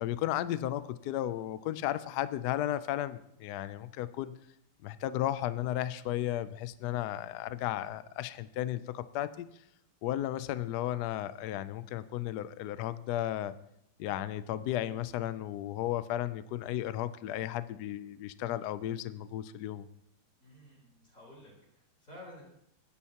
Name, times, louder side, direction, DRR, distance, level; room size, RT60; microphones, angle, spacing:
voice 1, 0.0-4.4 4.8-9.5 10.0-13.5 14.0-19.9, left 13 dB, 90° left, 14 dB, 0.8 m, -34 dB
voice 2, 20.4-22.4, left 1 dB, 35° left, -5 dB, 4.4 m, -52 dB
21.5 x 10.0 x 2.9 m, 0.78 s
omnidirectional pair, 2.4 m